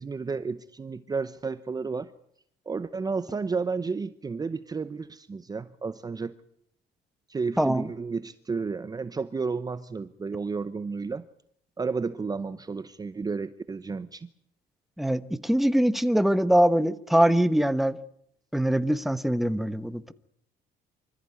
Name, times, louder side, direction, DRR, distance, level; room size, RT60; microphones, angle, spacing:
voice 1, 0.0-2.1 2.7-6.3 7.3-11.2 11.8-14.3, right 4 dB, 25° right, 0.8 m, -32 dB
voice 2, 7.6-7.9 15.0-18.0 18.5-20.1, right 1 dB, ahead, 1.1 m, -23 dB
25.5 x 14.5 x 9.6 m
cardioid pair, 110°, 17 cm